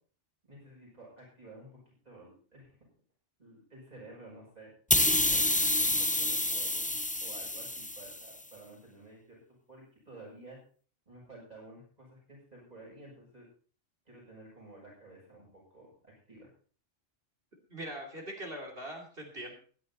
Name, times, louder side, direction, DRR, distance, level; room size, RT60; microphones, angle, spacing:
voice 1, 0.5-1.7 2.0-2.7 3.4-4.7 5.1-6.9 7.2-9.4 9.7-10.6 11.1-13.5 14.1-15.9 16.3-16.5, right 2 dB, 30° right, -4 dB, 7.0 m, -52 dB
sound 1, 4.9-8.3, left 2 dB, 15° left, 0.3 m, -28 dB
voice 2, 17.7-19.5, right 1 dB, 50° right, 1 dB, 3.1 m, -41 dB
15.5 x 11.0 x 4.2 m, 0.41 s
omnidirectional pair, 1.3 m